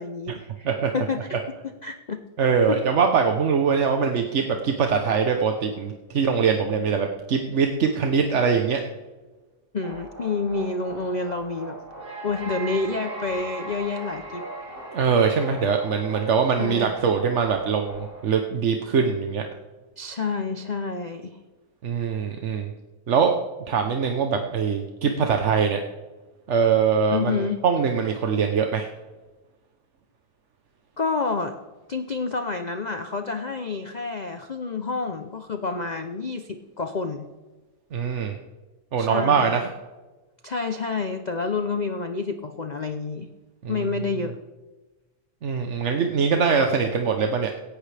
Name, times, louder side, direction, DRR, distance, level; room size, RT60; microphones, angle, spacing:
voice 1, 0.0-0.7 0.9-1.4 1.6-2.2 2.7-2.8 9.7-11.8 12.2-14.5 16.6-16.9 20.0-21.4 27.1-27.6 31.0-31.6 31.9-37.3 39.0-39.6 40.4-43.3 43.7-44.4, left 4 dB, 80° left, 7 dB, 0.4 m, -29 dB
voice 2, 2.4-8.8 14.9-19.4 21.8-22.7 23.1-23.3 23.7-25.8 26.5-27.4 27.6-28.9 37.9-38.3 38.9-39.7 43.6-43.9 45.4-47.5, right 6 dB, 50° right, 4 dB, 1.0 m, -22 dB
sound 1, 9.8-18.2, right 2 dB, 70° right, 4.8 m, -38 dB
17.5 x 15.0 x 3.4 m, 1.2 s
omnidirectional pair, 1.9 m